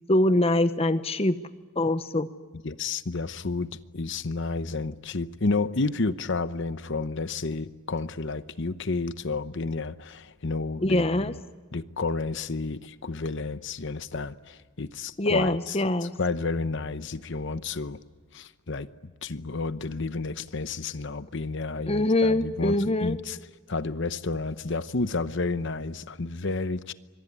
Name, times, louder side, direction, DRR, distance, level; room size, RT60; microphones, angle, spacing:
voice 1, 0.1-1.4 1.8-2.3 10.8-11.3 15.2-16.1 21.9-23.2, left 1 dB, 25° left, 0.8 m, -23 dB
voice 2, 2.6-11.4 11.7-18.0 18.3-18.9 19.2-23.4 23.7-26.9, left 3 dB, 55° left, 0.9 m, -31 dB
25.5 x 23.0 x 9.8 m
head